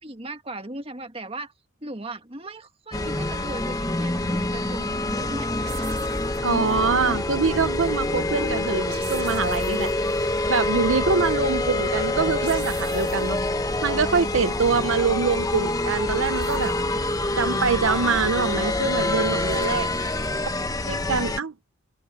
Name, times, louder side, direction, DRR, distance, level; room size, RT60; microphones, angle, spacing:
voice 1, 0.0-1.5 1.8-5.5 6.2-6.3 19.8-20.0, right 2 dB, 30° right, 1.7 m, -37 dB
sound 1, 2.9-21.4, left 2 dB, 20° left, 0.9 m, -26 dB
sound 2, 5.6-6.9 8.6-10.3 12.1-13.7 15.5-17.1 18.9-19.8, right 10 dB, 55° right, 1.5 m, -44 dB
voice 2, 6.4-9.9 10.5-13.4 13.8-16.7 17.4-19.9 20.9-21.5, right 5 dB, 90° right, 0.8 m, -24 dB
head